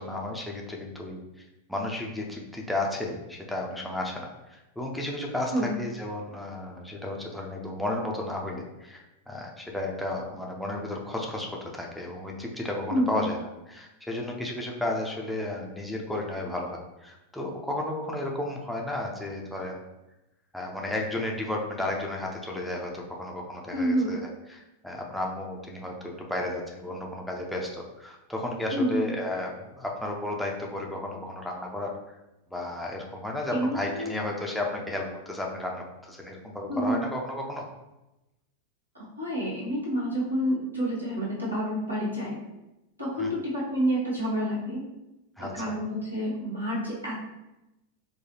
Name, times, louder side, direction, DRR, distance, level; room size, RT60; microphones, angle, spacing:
voice 1, 0.0-13.4 13.7-19.8 20.5-24.2 24.5-31.9 32.5-37.7 43.2-43.3 45.4-45.5, left 1 dB, ahead, -1 dB, 0.5 m, -33 dB
voice 2, 12.9-13.3 23.7-24.2 28.7-29.1 33.5-34.2 36.7-37.0 39.2-42.4 43.0-44.8 45.4-47.2, equal, 85° right, -6 dB, 1.3 m, -28 dB
4.6 x 2.3 x 2.8 m, 0.97 s
figure-of-eight pair, 90°, 0 cm